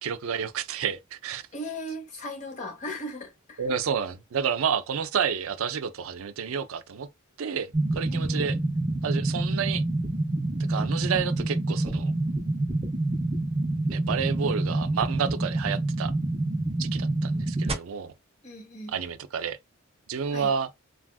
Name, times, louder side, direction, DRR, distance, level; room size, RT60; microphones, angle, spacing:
voice 1, 0.0-1.4 3.6-7.1 7.4-8.6 9.0-9.8 10.6-12.1 13.9-16.1 16.8-18.1 18.9-19.6 20.1-20.7, right 7 dB, 70° right, 0.4 m, -30 dB
voice 2, 1.5-3.6 8.1-8.6 18.4-19.0 20.3-20.5, left 1 dB, 35° left, 0.9 m, -38 dB
sound 1, 7.7-17.7, right 2 dB, 30° right, 0.7 m, -27 dB
3.3 x 2.4 x 2.2 m
head